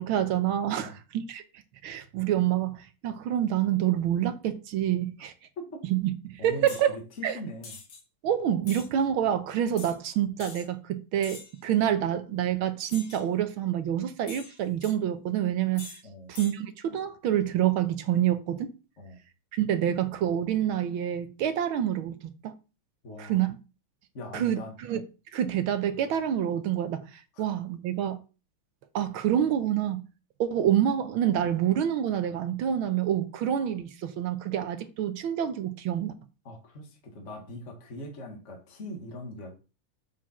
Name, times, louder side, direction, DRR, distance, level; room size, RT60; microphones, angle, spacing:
voice 1, 0.0-1.4 1.8-5.3 5.9-7.0 7.2-7.4 8.2-15.8 16.3-18.7 19.5-22.5 23.2-23.5 24.3-25.0 25.3-28.2 28.9-30.0 30.4-36.1, right 10 dB, 75° right, 1.6 m, -27 dB
voice 2, 6.4-7.7 16.0-16.3 19.0-19.2 23.0-23.5 24.1-24.7 27.3-27.4 36.5-39.5, left 1 dB, 35° left, 1.7 m, -41 dB
sound 1, 6.7-6.9 7.6-8.0 8.6-8.9 9.8-10.0 10.4-10.7 11.2-11.6 12.9-13.3 14.3-14.9 15.8-16.0 16.3-16.6, left 4 dB, 70° left, 2.4 m, -44 dB
7.4 x 5.0 x 4.2 m
omnidirectional pair, 2.3 m